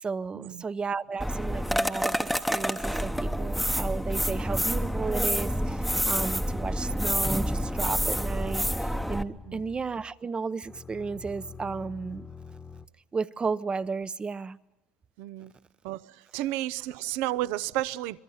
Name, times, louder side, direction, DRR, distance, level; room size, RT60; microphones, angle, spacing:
voice 1, 0.0-12.3 13.1-14.6, right 4 dB, 25° right, 0.8 m, -34 dB
sound 1, 1.2-9.2, equal, ahead, 1.0 m, -28 dB
sound 2, 6.0-10.2 10.6-12.9, left 5 dB, 20° left, 1.3 m, -46 dB
voice 2, 15.2-15.5 15.8-18.2, right 15 dB, 80° right, 0.7 m, -32 dB
26.5 x 22.5 x 5.7 m
supercardioid pair, 105°, 4 cm